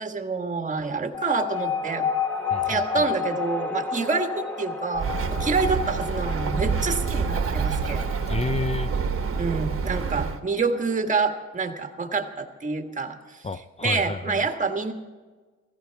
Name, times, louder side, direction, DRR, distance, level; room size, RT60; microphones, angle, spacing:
voice 1, 0.0-2.1 2.7-8.0 9.4-13.4 13.8-14.9, right 4 dB, 25° right, 5 dB, 1.6 m, -27 dB
sound 1, 1.1-12.1, left 6 dB, 5° left, 1.6 m, -32 dB
voice 2, 2.5-3.1 8.3-8.9 13.4-14.4, left 3 dB, 20° left, 13 dB, 0.5 m, -30 dB
Bird, 4.9-10.4, right 5 dB, 45° right, 1.4 m, -27 dB
16.0 x 15.5 x 4.7 m, 1.3 s
cardioid pair, 90°, 30 cm